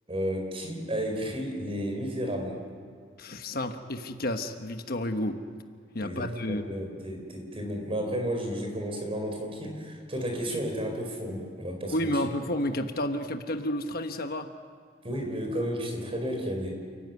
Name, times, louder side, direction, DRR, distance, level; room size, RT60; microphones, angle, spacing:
voice 1, 0.1-2.6 6.0-12.1 15.0-16.7, equal, 30° right, 3 dB, 4.8 m, -32 dB
voice 2, 3.2-5.4 5.9-6.7 11.9-14.5, left 1 dB, 50° left, 6 dB, 1.2 m, -31 dB
29.0 x 15.0 x 9.5 m, 2.1 s
head